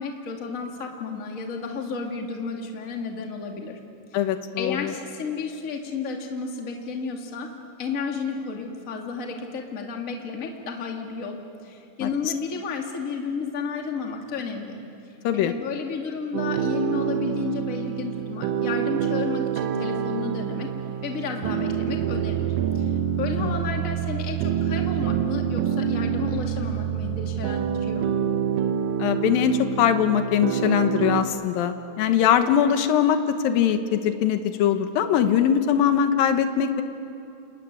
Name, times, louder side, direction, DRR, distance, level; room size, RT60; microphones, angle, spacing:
voice 1, 0.0-3.8 4.6-7.5 7.8-14.8 15.3-20.7 21.0-22.9 23.2-28.1, left 5 dB, 40° left, 2 dB, 1.2 m, -32 dB
voice 2, 4.1-4.9 12.0-12.3 15.2-15.5 23.4-23.5 29.0-33.2 33.4-36.8, left 9 dB, 70° left, 8 dB, 2.2 m, -22 dB
sound 1, 16.3-31.2, right 9 dB, 70° right, 2.5 m, -26 dB
29.0 x 21.5 x 9.5 m, 2.7 s
omnidirectional pair, 5.6 m